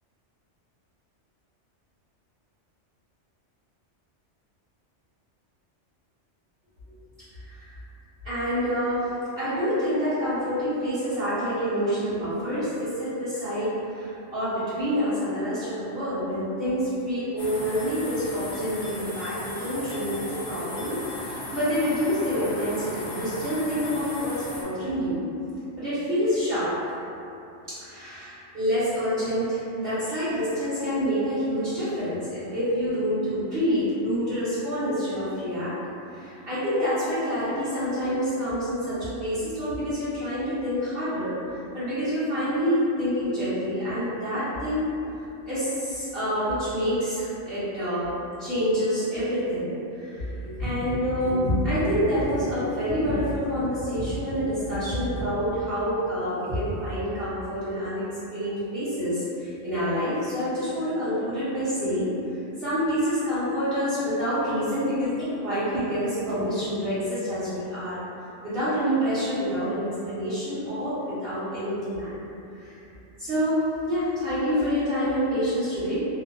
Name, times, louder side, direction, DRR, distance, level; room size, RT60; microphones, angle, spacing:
voice 1, 7.4-7.7 8.2-25.2 25.8-26.7 27.7-35.7 36.1-45.2 45.5-48.1 48.4-68.0 68.4-72.1 72.5-72.8 73.2-76.0, equal, 55° right, -15 dB, 1.0 m, -27 dB
sound 1, 17.4-24.6, left 1 dB, 60° left, 0.6 m, -37 dB
2.7 x 2.1 x 2.5 m, 2.7 s
omnidirectional pair, 1.2 m